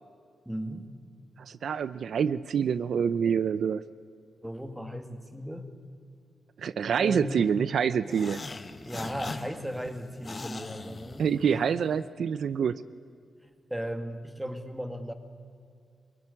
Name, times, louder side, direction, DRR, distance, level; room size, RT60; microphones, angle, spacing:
voice 1, 0.5-0.9 4.4-5.7 7.0-7.6 8.1-8.2 8.8-11.6 13.4-15.1, equal, 5° right, 7 dB, 2.0 m, -36 dB
voice 2, 1.4-3.8 6.6-8.4 11.2-12.8, right 7 dB, 65° right, 14 dB, 0.6 m, -26 dB
sound 1, 8.1-11.8, left 3 dB, 30° left, 1.3 m, -41 dB
23.5 x 22.5 x 9.9 m, 2.3 s
wide cardioid pair, 155°, 0 cm